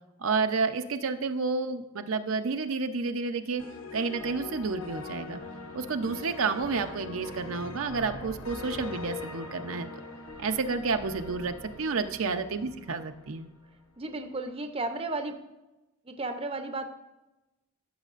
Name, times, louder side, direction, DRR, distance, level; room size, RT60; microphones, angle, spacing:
voice 1, 0.2-3.6 3.9-5.4 5.7-9.9 10.4-13.5, right 4 dB, 80° right, 7 dB, 0.6 m, -30 dB
sound 1, 3.6-13.7, left 3 dB, 80° left, 1.0 m, -42 dB
voice 2, 14.0-15.3 16.0-16.9, right 2 dB, 25° right, 7 dB, 0.6 m, -33 dB
14.5 x 6.4 x 2.5 m, 1.0 s
head